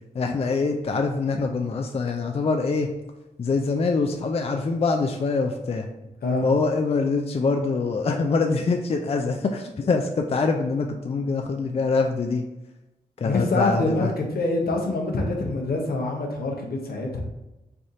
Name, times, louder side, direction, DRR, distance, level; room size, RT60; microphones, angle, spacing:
voice 1, 0.1-2.9 3.4-5.9 6.4-12.5 13.2-14.1, left 4 dB, 40° left, 4 dB, 0.4 m, -24 dB
voice 2, 13.2-17.2, left 2 dB, 70° left, 0 dB, 0.8 m, -25 dB
3.4 x 2.6 x 3.7 m, 0.99 s
supercardioid pair, 40°, 16 cm